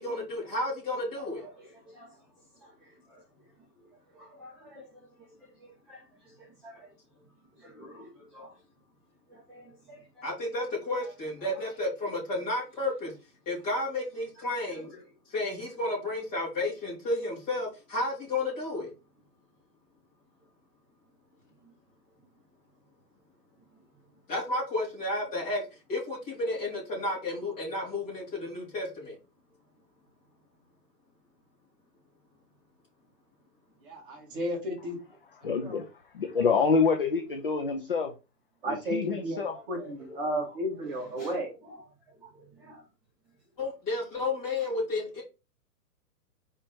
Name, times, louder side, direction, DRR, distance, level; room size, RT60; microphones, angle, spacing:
voice 1, 0.0-1.5 10.2-13.1 13.4-14.9 15.3-18.9 24.3-25.6 25.9-29.1 43.6-45.2, left 2 dB, 15° left, 3.3 m, -32 dB
voice 2, 1.1-6.9 7.2-8.6 9.3-10.7 11.0-11.1 11.4-11.8 13.6-13.7 14.3-15.1 21.6-21.7 23.7-23.8 35.4-35.5 39.4-42.9 44.1-44.7, equal, ahead, 1.2 m, -52 dB
voice 3, 33.8-35.0 35.4-35.8 36.4-36.6 38.6-39.4 39.7-41.5, equal, 30° right, 2.0 m, -33 dB
voice 4, 35.4-35.8 36.1-38.1 38.7-39.5, left 5 dB, 35° left, 0.5 m, -26 dB
4.9 x 4.6 x 4.3 m
hypercardioid pair, 170°, 50 cm